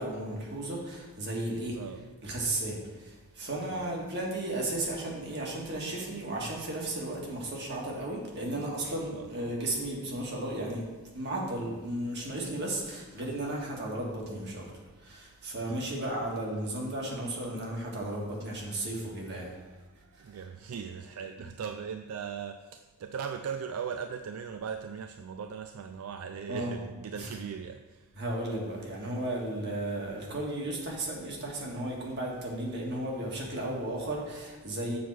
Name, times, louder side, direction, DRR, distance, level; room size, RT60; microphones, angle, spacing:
voice 1, 0.0-10.9 11.1-14.7 15.0-19.5 26.5-26.7 27.1-27.4 28.2-35.0, right 1 dB, 50° right, -2 dB, 1.7 m, -34 dB
voice 2, 8.5-9.3 15.6-15.9 20.1-28.1, right 7 dB, 75° right, 8 dB, 0.4 m, -39 dB
7.2 x 4.5 x 6.0 m, 1.3 s
head